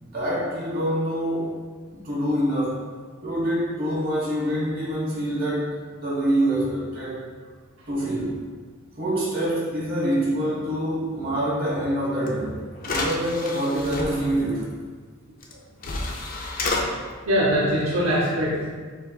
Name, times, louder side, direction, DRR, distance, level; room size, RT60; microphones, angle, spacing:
voice 1, 0.0-1.6 2.0-2.8 3.2-5.7 6.0-7.2 7.9-8.4 9.0-12.6 12.8-14.7, equal, 45° right, -5 dB, 1.3 m, -25 dB
sound 1, 12.3-12.4 12.8-14.1 15.4-15.5 15.8-16.8, left 2 dB, 40° left, 0.4 m, -29 dB
voice 2, 17.2-18.7, equal, 65° right, -6 dB, 0.8 m, -22 dB
4.5 x 3.9 x 2.3 m, 1.5 s
head